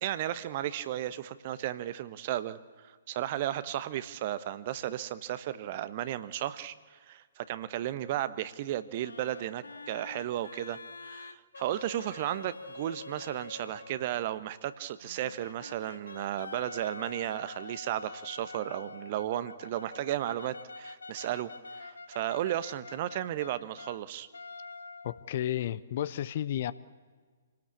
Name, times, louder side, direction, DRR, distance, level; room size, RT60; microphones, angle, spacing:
voice 1, 0.0-24.3, right 12 dB, 40° right, 14 dB, 1.1 m, -34 dB
sound 1, 9.0-14.1 15.0-24.0 24.3-25.4, left 3 dB, 70° left, 1.1 m, -46 dB
voice 2, 25.0-26.7, left 11 dB, 45° left, 17 dB, 0.8 m, -32 dB
27.0 x 18.5 x 8.5 m, 1.5 s
figure-of-eight pair, 125°, 0 cm